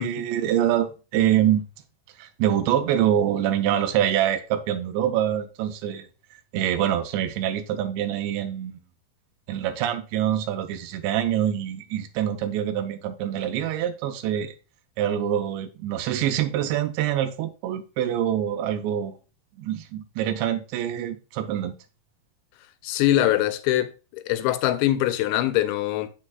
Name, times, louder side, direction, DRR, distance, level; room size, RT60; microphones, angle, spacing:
voice 1, 0.0-1.6 2.2-8.8 9.5-14.5 15.0-19.2 19.6-21.7, right 10 dB, 85° right, 3.0 m, -25 dB
voice 2, 22.8-26.1, left 13 dB, 85° left, 3.0 m, -23 dB
7.5 x 7.1 x 2.4 m
omnidirectional pair, 5.1 m